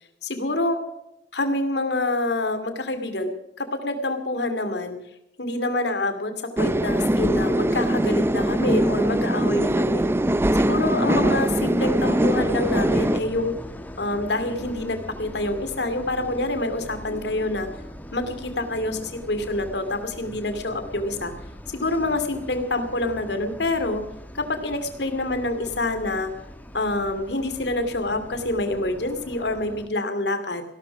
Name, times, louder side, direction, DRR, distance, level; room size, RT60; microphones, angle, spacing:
voice 1, 0.2-0.8 1.3-3.3 3.6-5.0 5.4-6.3 6.6-10.0 10.6-13.5 14.0-17.7 18.1-21.3 21.7-24.0 24.3-26.3 26.7-30.6, left 2 dB, 65° left, 8 dB, 2.7 m, -26 dB
sound 1, 6.6-13.2, right 1 dB, 15° right, 0.5 m, -22 dB
sound 2, 11.7-29.9, equal, 10° left, 1.2 m, -41 dB
17.0 x 12.5 x 6.0 m, 0.86 s
head